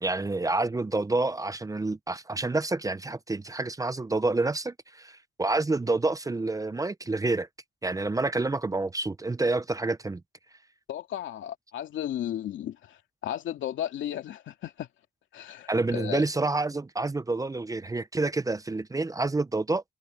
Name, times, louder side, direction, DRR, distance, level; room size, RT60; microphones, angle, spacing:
voice 1, 0.0-7.5 7.8-10.2 15.7-19.8, right 2 dB, 15° right, 0.8 m, -28 dB
voice 2, 10.9-14.9 15.3-16.2, left 11 dB, 75° left, 2.7 m, -34 dB
cardioid pair, 90°, 20 cm